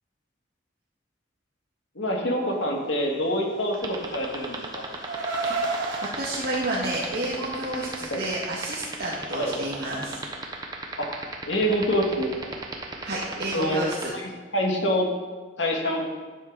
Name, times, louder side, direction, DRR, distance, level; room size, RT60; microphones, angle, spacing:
voice 1, 2.0-4.8 8.1-8.2 9.3-9.6 11.0-11.1 11.5-12.3 13.5-13.8 14.2-15.1 15.6-16.0, equal, 75° left, 0 dB, 2.1 m, -26 dB
Car, 3.6-6.1, right 3 dB, 80° right, 1.8 m, -31 dB
sound 1, 3.7-14.0, right 3 dB, 20° right, 1.2 m, -33 dB
voice 2, 5.4-10.2 13.0-14.1, right 1 dB, 55° right, -5 dB, 2.0 m, -31 dB
12.0 x 9.7 x 4.1 m, 1.4 s
head